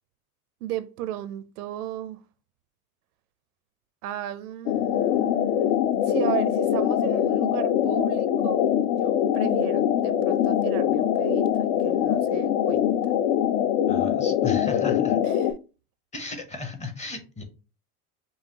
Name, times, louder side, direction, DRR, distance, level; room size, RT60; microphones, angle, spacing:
voice 1, 0.6-2.2 4.0-8.7 9.0-13.1 15.2-15.5, right 12 dB, 85° right, 0.6 m, -35 dB
sound 1, 4.7-15.5, left 10 dB, 55° left, 0.5 m, -23 dB
voice 2, 13.9-15.2 16.1-17.4, left 3 dB, 15° left, 0.7 m, -35 dB
5.5 x 2.3 x 2.8 m
supercardioid pair, 120°, 44 cm